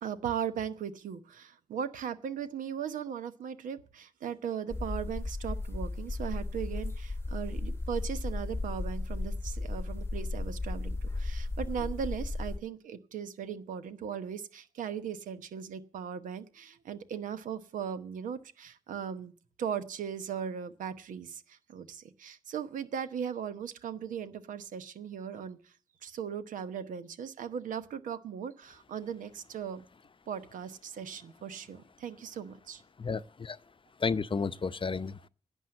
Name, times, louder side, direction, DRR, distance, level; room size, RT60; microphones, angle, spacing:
voice 1, 0.0-19.3 19.6-25.7 26.0-29.9 30.3-32.8, right 8 dB, 80° right, 1.0 m, -38 dB
sound 1, 4.7-12.6, left 2 dB, 20° left, 1.0 m, -35 dB
voice 2, 33.0-33.6 34.0-35.3, left 5 dB, 40° left, 0.7 m, -32 dB
11.0 x 8.2 x 7.6 m
supercardioid pair, 45°, 13 cm